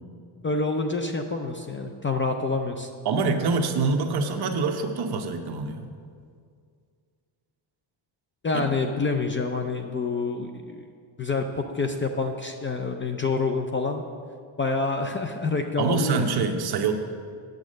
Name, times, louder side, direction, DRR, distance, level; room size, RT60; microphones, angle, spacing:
voice 1, 0.4-2.9 8.4-10.9 11.2-14.0 14.6-16.3, left 3 dB, 25° left, 4 dB, 0.4 m, -27 dB
voice 2, 3.0-5.9 8.5-8.6 15.8-16.9, right 4 dB, 55° right, 5 dB, 0.9 m, -25 dB
9.3 x 7.3 x 6.4 m, 2.2 s
cardioid pair, 170°, 47 cm